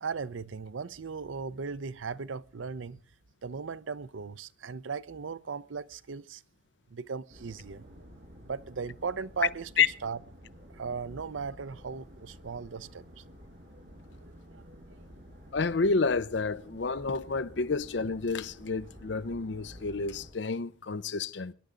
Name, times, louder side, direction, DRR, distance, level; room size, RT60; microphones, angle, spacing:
voice 1, 0.0-3.0 3.4-6.4 6.9-7.9 8.4-9.7 10.0-10.2 10.7-13.2 14.2-15.0, right 5 dB, 90° right, 0.6 m, -37 dB
sound 1, 7.3-20.3, equal, 60° right, 6.1 m, -51 dB
voice 2, 15.5-21.5, left 4 dB, 65° left, 0.6 m, -29 dB
24.0 x 11.0 x 3.8 m
head